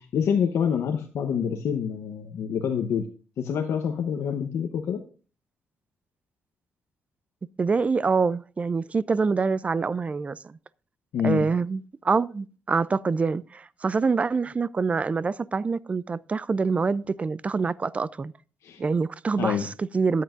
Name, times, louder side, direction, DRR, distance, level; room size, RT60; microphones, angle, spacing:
voice 1, 0.0-3.0 3.4-5.0 11.1-11.5 18.6-18.8 19.4-19.7, left 7 dB, 80° left, 0.8 m, -26 dB
voice 2, 7.6-10.4 11.2-18.3 18.8-20.2, right 4 dB, 30° right, 0.3 m, -25 dB
13.5 x 9.3 x 2.5 m
cardioid pair, 105°, 5 cm